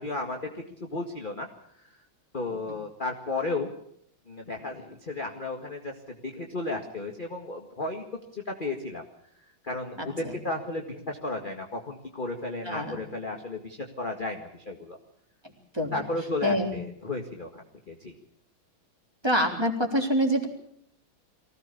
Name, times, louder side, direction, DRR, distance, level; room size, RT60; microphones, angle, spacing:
voice 1, 0.0-1.5 2.3-3.7 4.3-5.9 6.2-8.1 8.3-9.0 9.6-15.0 15.9-18.1, left 2 dB, 25° left, 2 dB, 2.0 m, -34 dB
voice 2, 10.0-10.3 12.6-13.0 15.7-16.1 16.4-16.8 19.2-20.5, equal, 10° right, 1 dB, 4.0 m, -26 dB
24.0 x 17.5 x 7.1 m, 0.70 s
omnidirectional pair, 2.3 m